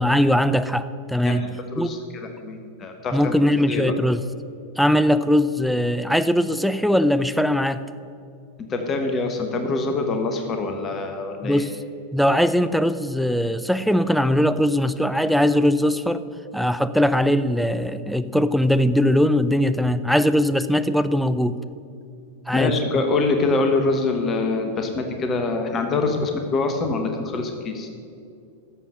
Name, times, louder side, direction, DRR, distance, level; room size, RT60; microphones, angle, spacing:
voice 1, 0.0-1.5 1.8-1.9 3.1-4.2 4.8-7.9 11.4-11.8 12.1-16.2 16.5-21.6 22.5-23.0, equal, ahead, 13 dB, 0.4 m, -20 dB
voice 2, 1.7-3.4 3.7-4.0 8.7-11.6 22.5-27.9, left 3 dB, 25° left, 5 dB, 1.2 m, -24 dB
11.5 x 7.2 x 6.3 m, 2.4 s
figure-of-eight pair, 90°, 0 cm